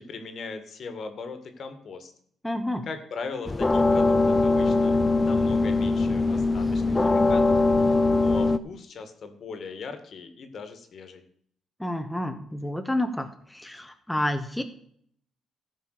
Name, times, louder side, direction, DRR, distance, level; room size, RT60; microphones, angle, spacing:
voice 1, 0.0-2.1 2.8-11.2, left 4 dB, 55° left, 8 dB, 1.7 m, -39 dB
voice 2, 2.4-2.9 11.8-14.6, left 1 dB, 5° left, 6 dB, 1.0 m, -29 dB
sound 1, 3.4-8.6, left 3 dB, 20° left, 0.6 m, -21 dB
14.0 x 5.3 x 6.6 m, 0.65 s
cardioid pair, 90°, 0 cm